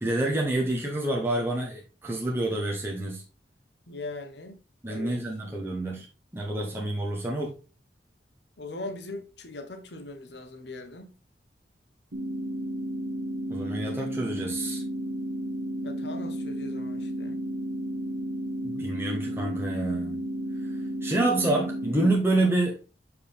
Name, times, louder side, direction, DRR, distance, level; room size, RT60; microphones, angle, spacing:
voice 1, 0.0-3.2 4.8-6.1 6.3-7.5 13.5-14.8 18.6-20.2 21.0-22.8, right 2 dB, 15° right, 1.1 m, -28 dB
voice 2, 3.9-4.6 4.9-5.2 8.6-11.1 15.8-17.4, left 2 dB, 75° left, 1.2 m, -40 dB
sound 1, 12.1-22.1, right 1 dB, 85° right, 1.1 m, -33 dB
6.9 x 5.0 x 3.5 m
head